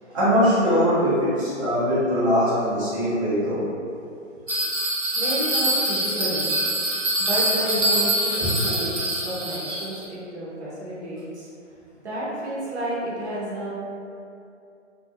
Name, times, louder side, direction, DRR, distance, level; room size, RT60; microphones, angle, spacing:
voice 1, 0.1-3.6 8.4-8.5, equal, 25° right, -12 dB, 0.7 m, -21 dB
Bell, 4.5-10.0, right 1 dB, 90° right, 0.9 m, -24 dB
voice 2, 5.2-6.6 7.2-11.5 12.0-13.7, right 1 dB, 60° right, -7 dB, 1.0 m, -31 dB
2.5 x 2.4 x 2.7 m, 2.6 s
figure-of-eight pair, 130°, 37 cm